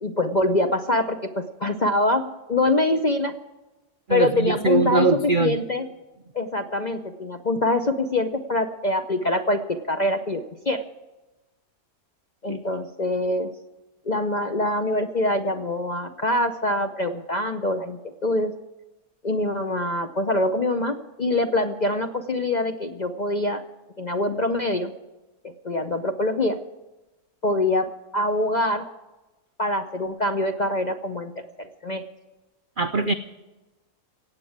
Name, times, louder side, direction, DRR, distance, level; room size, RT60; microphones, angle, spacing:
voice 1, 0.0-3.4 4.1-5.9 6.3-10.8 12.4-13.5 14.1-18.5 19.2-23.6 24.0-24.9 25.4-26.6 27.4-27.9 28.1-28.9 29.6-32.0, left 2 dB, 50° left, 6 dB, 0.5 m, -24 dB
voice 2, 4.1-5.6 12.5-12.6 32.8-33.1, right 3 dB, 80° right, 9 dB, 0.4 m, -22 dB
16.5 x 8.3 x 8.6 m, 1.1 s
omnidirectional pair, 1.7 m